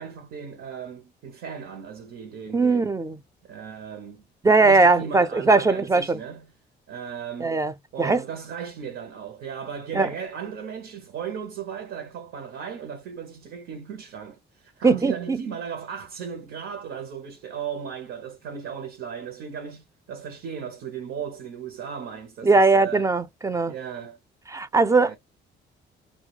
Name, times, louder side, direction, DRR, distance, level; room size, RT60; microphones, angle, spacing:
voice 1, 0.0-2.9 3.5-4.2 4.6-6.5 6.9-7.6 7.9-23.1 23.6-24.2 25.0-25.2, right 7 dB, 85° right, 0.7 m, -36 dB
voice 2, 2.5-3.2 4.4-6.2 7.4-7.7 8.0-8.2 9.9-10.1 14.8-15.4 22.4-23.7 24.5-25.2, right 3 dB, 15° right, 0.4 m, -20 dB
2.2 x 2.2 x 2.8 m
cardioid pair, 90°, 20 cm